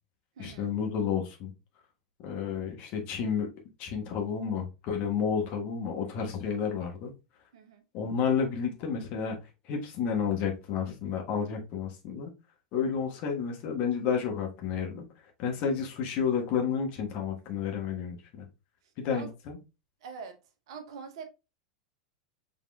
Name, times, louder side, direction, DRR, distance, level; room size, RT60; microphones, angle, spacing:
voice 1, 0.4-1.5 2.2-3.5 3.8-7.1 7.9-9.4 9.7-12.3 12.7-15.1 15.4-18.5 19.0-19.6, left 6 dB, 45° left, 1.4 m, -31 dB
voice 2, 7.5-7.8 19.1-19.3 20.0-20.4 20.7-21.3, right 5 dB, 55° right, 0.9 m, -43 dB
6.4 x 3.5 x 2.3 m
figure-of-eight pair, 85°, 3 cm